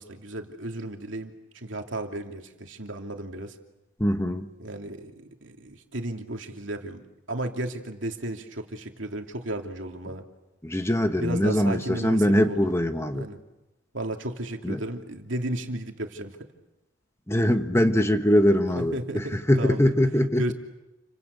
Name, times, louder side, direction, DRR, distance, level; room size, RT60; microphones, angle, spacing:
voice 1, 0.0-3.6 4.6-10.3 11.2-12.6 13.1-13.4 13.9-16.4 18.8-20.1 20.4-20.5, right 1 dB, 70° right, 3 dB, 2.8 m, -34 dB
voice 2, 4.0-4.5 10.6-13.3 14.6-14.8 17.3-20.5, equal, 15° left, 7 dB, 1.2 m, -22 dB
29.5 x 24.5 x 8.2 m, 0.98 s
head